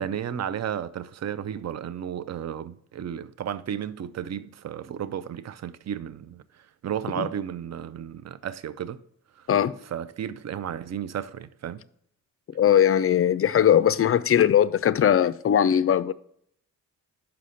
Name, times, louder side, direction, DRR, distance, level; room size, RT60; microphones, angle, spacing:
voice 1, 0.0-6.4 6.8-9.0 9.4-9.5 9.9-11.8, right 9 dB, 45° right, 0.6 m, -33 dB
voice 2, 12.5-16.1, left 9 dB, 35° left, 0.4 m, -20 dB
5.9 x 4.9 x 5.6 m
supercardioid pair, 45°, 38 cm